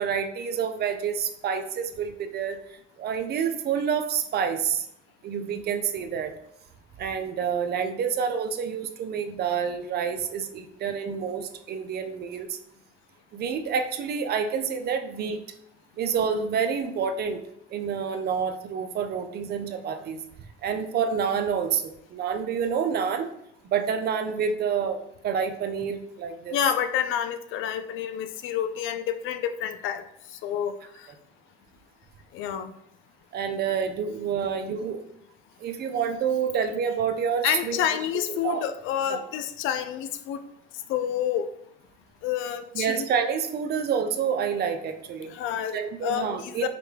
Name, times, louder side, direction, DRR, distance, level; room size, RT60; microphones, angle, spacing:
voice 1, 0.0-4.9 5.2-6.3 7.0-12.6 13.3-15.4 16.0-17.4 17.7-20.2 20.6-23.3 23.6-26.6 31.1-31.2 33.3-35.0 35.6-37.8 38.3-38.6 39.1-39.2 42.7-45.3 45.7-46.7, right 7 dB, 50° right, 7 dB, 0.5 m, -28 dB
voice 2, 26.5-30.0 30.4-31.1 32.3-32.7 37.4-40.4 40.9-41.5 42.2-43.0 45.3-45.8 46.0-46.7, left 9 dB, 75° left, 9 dB, 0.4 m, -28 dB
4.9 x 2.2 x 3.2 m, 0.75 s
cardioid pair, 100°, 20 cm